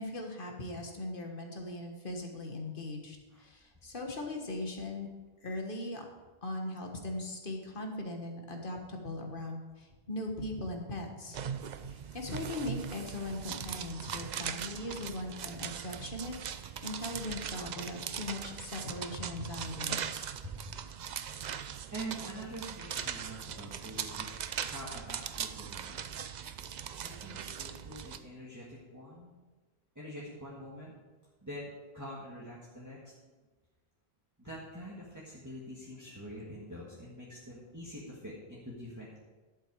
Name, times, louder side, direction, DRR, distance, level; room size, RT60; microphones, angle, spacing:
voice 1, 0.0-5.1 5.4-6.1 6.4-11.4 11.9-20.0, left 2 dB, 55° left, 2 dB, 1.7 m, -39 dB
sound 1, 11.3-28.2, right 8 dB, 55° right, 0.6 m, -40 dB
voice 2, 21.9-26.0 27.0-29.3 30.0-30.9 31.4-33.1 34.4-39.2, right 1 dB, 15° right, -6 dB, 1.8 m, -45 dB
11.5 x 7.7 x 4.8 m, 1.2 s
omnidirectional pair, 1.1 m